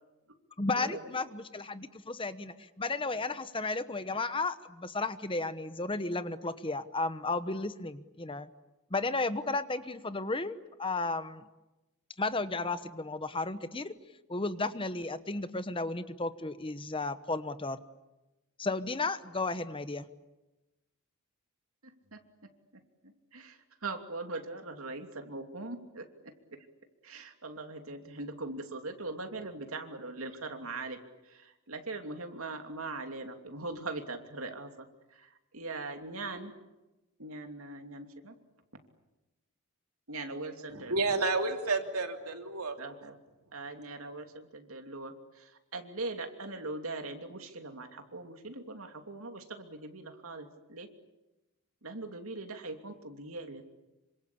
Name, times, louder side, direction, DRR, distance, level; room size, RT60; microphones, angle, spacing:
voice 1, 0.6-8.5 8.9-11.5 12.2-13.9 14.3-17.8 18.6-20.0, left 3 dB, 25° left, 12 dB, 1.0 m, -33 dB
voice 2, 21.8-22.2 23.0-26.7 27.0-31.0 31.2-34.8 35.1-36.5 37.2-38.3 40.1-40.9 42.8-43.2 43.5-50.9 51.8-53.6, right 2 dB, 70° right, 5 dB, 2.9 m, -41 dB
voice 3, 40.7-42.8, right 3 dB, 90° right, 5 dB, 3.1 m, -30 dB
27.0 x 25.5 x 8.6 m, 1.0 s
head